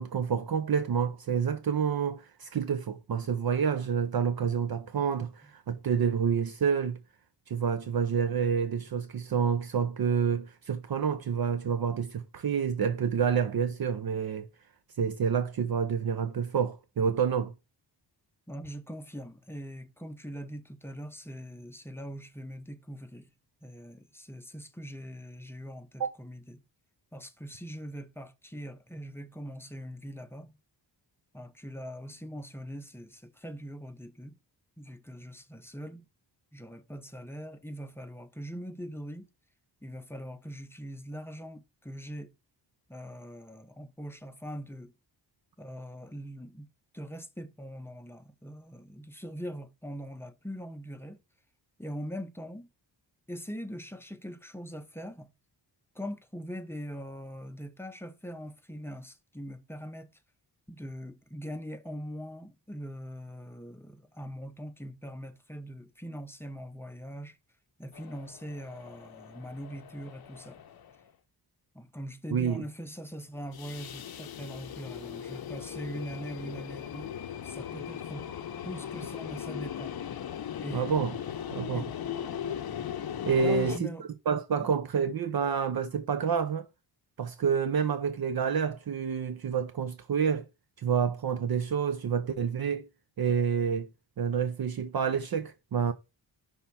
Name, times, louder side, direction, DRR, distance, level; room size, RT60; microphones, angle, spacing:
voice 1, 0.0-7.0 7.5-14.5 15.0-17.5 26.0-26.1 72.3-72.6 80.7-81.1 81.5-81.9 83.3-83.8 84.3-86.6 87.2-90.5 90.8-92.9 93.2-93.9 94.2-95.9, right 7 dB, 55° right, 0.6 m, -28 dB
voice 2, 18.5-23.4 23.6-26.6 27.1-30.6 31.3-34.4 34.8-36.1 36.5-39.3 39.8-42.3 42.9-44.9 45.6-51.2 51.8-52.7 53.3-55.3 55.9-60.2 60.7-67.4 67.8-70.6 71.7-77.2 77.4-78.3 78.6-80.0 80.6-80.9 81.7-81.9 83.4-84.1 84.5-84.7, equal, 5° left, 0.6 m, -42 dB
sound 1, 67.9-71.1 73.4-83.8, left 9 dB, 60° left, 0.6 m, -39 dB
5.7 x 3.5 x 5.6 m
wide cardioid pair, 165°, 43 cm